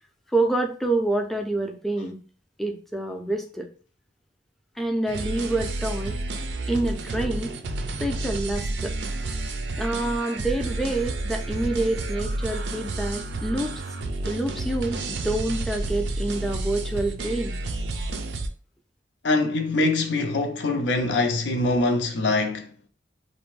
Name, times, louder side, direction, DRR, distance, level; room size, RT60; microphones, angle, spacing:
voice 1, 0.3-2.2 2.6-3.7 4.8-6.2 6.7-7.5 8.0-9.0 9.8-13.7 14.3-17.6, right 2 dB, ahead, 0.3 m, -27 dB
sound 1, 5.1-18.5, right 2 dB, 85° right, 0.4 m, -30 dB
voice 2, 19.2-22.7, left 2 dB, 90° left, 0.5 m, -23 dB
2.5 x 2.1 x 3.0 m
head